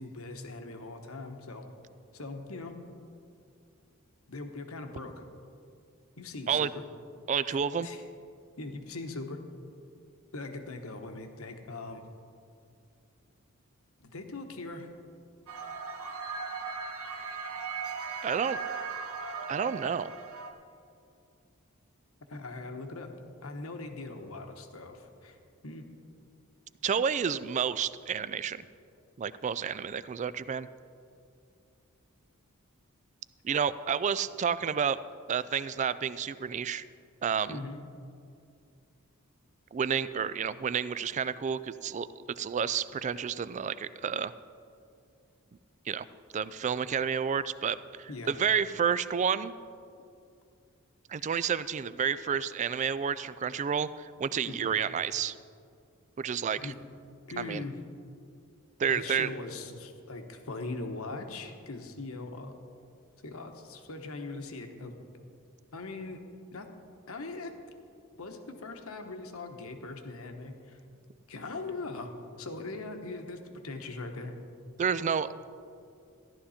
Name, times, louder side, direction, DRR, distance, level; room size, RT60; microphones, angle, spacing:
voice 1, 0.0-1.6 2.1-2.8 4.3-5.1 6.2-6.8 7.5-8.0 8.6-9.4 10.3-12.0 14.0-14.9 22.3-23.2 23.4-25.4 25.6-25.9 37.5-37.8 48.1-48.3 54.5-54.7 56.6-56.8 57.3-57.8 58.9-62.5 63.2-65.0 65.7-66.2 66.5-66.7 67.1-67.5 68.2-70.8 71.3-72.1 72.4-74.3, left 3 dB, 75° left, 5 dB, 1.2 m, -40 dB
voice 2, 7.3-7.9 18.2-18.6 19.5-20.1 26.8-28.6 29.2-30.7 33.4-35.0 35.3-36.8 37.2-37.6 39.7-44.3 45.9-46.1 46.3-49.5 51.1-55.4 56.2-56.7 57.4-57.6 58.8-59.3 74.8-75.3, right 7 dB, 35° right, 16 dB, 0.3 m, -30 dB
sound 1, 15.5-20.5, right 5 dB, 85° right, 1.2 m, -38 dB
14.0 x 11.5 x 4.3 m, 2.4 s
head